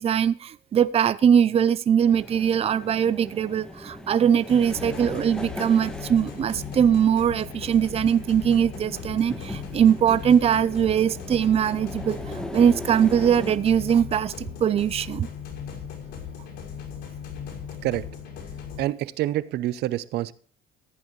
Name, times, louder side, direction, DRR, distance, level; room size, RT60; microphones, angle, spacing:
voice 1, 0.0-15.3, right 8 dB, 35° right, 0.6 m, -21 dB
sound 1, 2.0-13.6, left 1 dB, 5° left, 1.8 m, -39 dB
sound 2, 4.5-18.8, left 7 dB, 80° left, 5.6 m, -38 dB
voice 2, 18.8-20.3, right 14 dB, 75° right, 0.7 m, -27 dB
14.5 x 10.5 x 3.2 m
cardioid pair, 110°, 17 cm